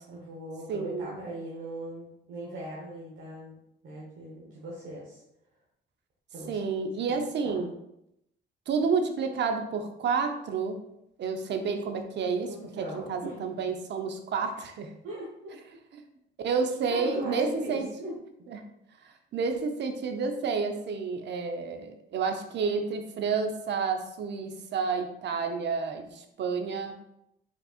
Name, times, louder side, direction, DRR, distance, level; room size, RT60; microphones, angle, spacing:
voice 1, 0.1-3.6 3.8-5.2 6.3-6.6 7.1-7.7 12.4-13.5 15.0-15.5 16.9-18.1, right 1 dB, 85° right, -5 dB, 1.2 m, -39 dB
voice 2, 0.7-1.2 6.5-7.7 8.7-10.8 11.2-14.9 16.4-17.9 18.5-18.6 19.3-26.9, right 5 dB, 60° right, 6 dB, 0.7 m, -30 dB
5.3 x 4.1 x 2.4 m, 0.82 s
cardioid pair, 90°, 20 cm